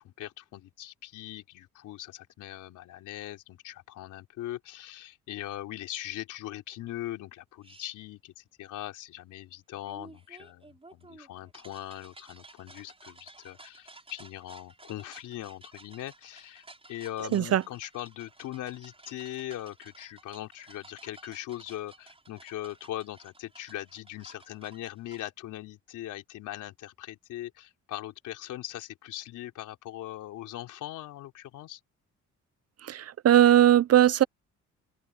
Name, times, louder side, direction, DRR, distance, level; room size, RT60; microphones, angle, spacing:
voice 1, 0.0-31.8, left 14 dB, 90° left, 3.7 m, -40 dB
sound 1, 7.6-7.9 9.9-25.3, right 2 dB, 20° right, 6.9 m, -54 dB
voice 2, 17.3-17.6 32.8-34.2, right 11 dB, 55° right, 0.9 m, -19 dB
open air
cardioid pair, 90°, 30 cm